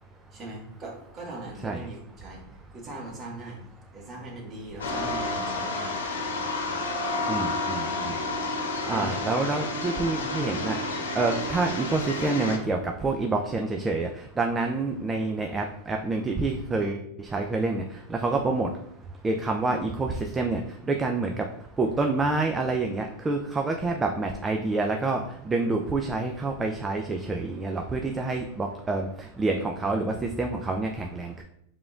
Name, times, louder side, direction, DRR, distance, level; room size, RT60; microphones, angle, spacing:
voice 1, 0.3-2.4 2.7-3.6 3.9-6.0 7.7-8.1 8.8-9.2, right 2 dB, 30° right, -2 dB, 1.5 m, -40 dB
sound 1, 4.8-12.6, left 2 dB, 90° left, 0.9 m, -30 dB
voice 2, 7.3-8.2 8.9-10.8 11.1-14.1 14.4-17.8 18.1-18.7 19.2-20.6 20.9-21.4 21.8-31.4, right 3 dB, 15° right, 3 dB, 0.4 m, -27 dB
4.9 x 3.7 x 2.3 m, 0.76 s
hypercardioid pair, 115°, 0 cm